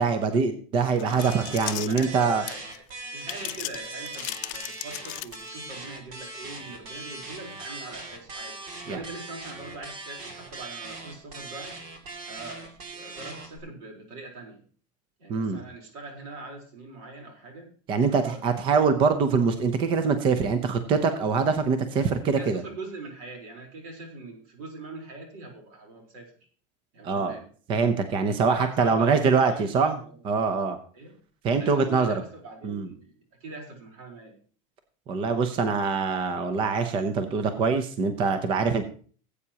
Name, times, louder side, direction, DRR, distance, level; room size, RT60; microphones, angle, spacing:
voice 1, 0.0-2.4 8.9-9.0 15.3-15.6 17.9-22.6 27.0-27.4 27.7-30.0 30.2-30.8 31.4-32.2 32.6-32.9 35.1-38.8, right 5 dB, 30° right, 9 dB, 0.7 m, -24 dB
sound 1, 0.8-2.8 3.2-5.6, left 19 dB, 65° left, 0.5 m, -36 dB
voice 2, 1.0-2.8 3.1-8.5 8.9-11.7 12.3-14.6 15.2-17.7 17.9-18.8 22.2-26.3 26.9-27.5 28.4-30.2 30.9-31.1 31.6-34.4, right 2 dB, 90° right, 2 dB, 4.0 m, -42 dB
sound 2, 1.2-13.6, right 3 dB, 50° right, 2.4 m, -40 dB
17.5 x 8.4 x 2.9 m, 0.43 s
cardioid pair, 175°, 17 cm